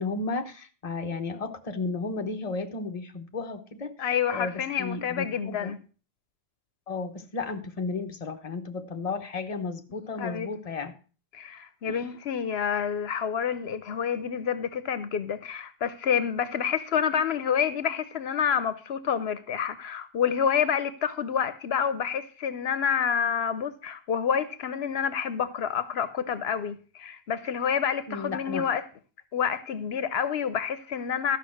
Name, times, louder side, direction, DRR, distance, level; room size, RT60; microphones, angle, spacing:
voice 1, 0.0-5.7 6.9-10.9 11.9-12.1 28.1-28.7, left 4 dB, 40° left, 1.1 m, -33 dB
voice 2, 4.0-5.8 10.2-10.5 11.3-28.8 29.3-31.4, left 7 dB, 80° left, 1.0 m, -28 dB
12.5 x 5.7 x 6.3 m
omnidirectional pair, 1.1 m